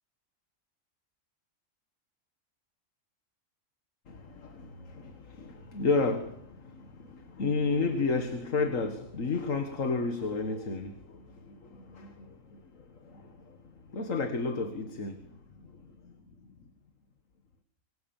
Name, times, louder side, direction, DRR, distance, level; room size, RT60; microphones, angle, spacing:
voice 1, 4.1-12.6 13.0-13.6 13.9-15.2 15.6-15.7 16.0-16.1, left 4 dB, 75° left, 2.1 m, -32 dB
26.5 x 22.5 x 7.2 m
omnidirectional pair, 1.4 m